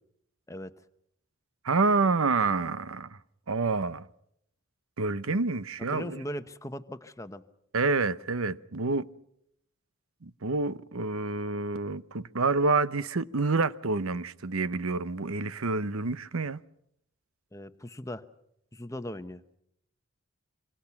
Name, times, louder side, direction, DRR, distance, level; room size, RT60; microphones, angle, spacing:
voice 1, 1.6-3.1 3.5-4.1 5.0-6.2 7.7-9.1 10.2-16.6, right 3 dB, 90° right, 0.9 m, -28 dB
voice 2, 5.9-7.4 17.5-18.2 18.7-19.4, equal, 15° left, 1.0 m, -39 dB
26.0 x 25.5 x 5.9 m
head